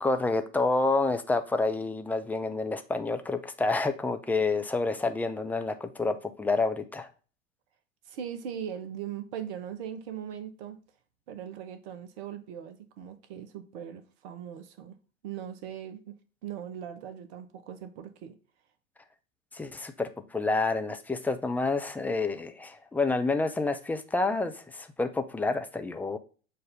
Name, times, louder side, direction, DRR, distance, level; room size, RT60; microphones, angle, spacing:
voice 1, 0.0-7.1 19.5-26.2, left 3 dB, 5° left, 0.3 m, -28 dB
voice 2, 8.1-10.8 11.3-14.9 15.2-16.1 16.4-18.3, right 9 dB, 55° right, 1.1 m, -40 dB
6.8 x 2.6 x 5.6 m
hypercardioid pair, 90°, 39 cm